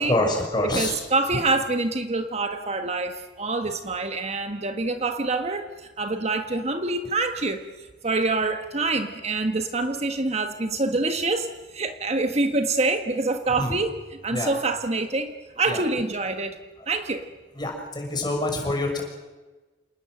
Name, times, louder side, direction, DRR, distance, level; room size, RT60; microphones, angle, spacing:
voice 1, 0.1-0.9 13.6-13.7 14.3-14.5 15.7-15.8 17.6-19.0, left 2 dB, 25° left, 2 dB, 6.0 m, -26 dB
voice 2, 0.6-5.7 6.0-7.6 8.0-11.5 11.7-16.6 16.9-17.2, right 3 dB, 40° right, 7 dB, 1.4 m, -26 dB
27.5 x 19.5 x 7.8 m, 1.2 s
head